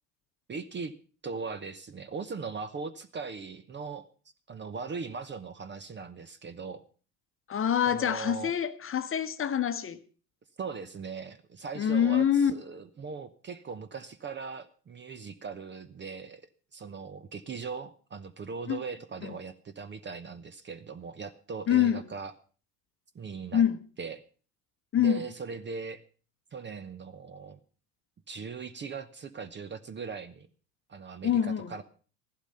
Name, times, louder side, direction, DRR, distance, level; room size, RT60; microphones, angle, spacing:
voice 1, 0.5-0.9 1.2-4.1 4.5-6.8 7.9-8.5 10.6-16.4 16.7-22.3 23.1-23.6 24.0-24.2 24.9-26.0 26.5-27.6 28.3-30.5 30.9-31.8, right 5 dB, 25° right, 0.9 m, -39 dB
voice 2, 7.5-10.0 11.8-12.5 18.7-18.8 21.7-22.1 23.5-23.8 24.9-25.3 31.2-31.7, left 9 dB, 25° left, 1.1 m, -25 dB
14.5 x 11.5 x 5.5 m
figure-of-eight pair, 70°, 48 cm